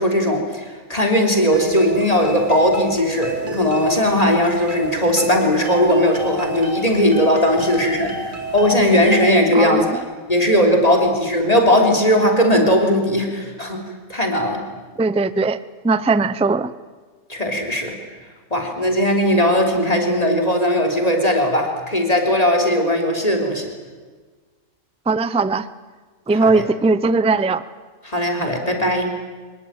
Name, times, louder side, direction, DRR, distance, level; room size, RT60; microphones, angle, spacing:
voice 1, 0.0-10.0 10.3-13.8 14.1-14.6 17.3-18.0 18.5-23.7 26.4-26.6 28.1-29.1, equal, 25° left, 3 dB, 3.6 m, -18 dB
sound 1, 1.5-9.3, right 2 dB, 35° right, 3.0 m, -31 dB
voice 2, 9.5-9.9 15.0-15.6 15.8-16.7 25.1-25.7 26.3-27.6, right 3 dB, 10° right, 15 dB, 0.4 m, -19 dB
25.0 x 21.0 x 8.9 m, 1.4 s
omnidirectional pair, 1.4 m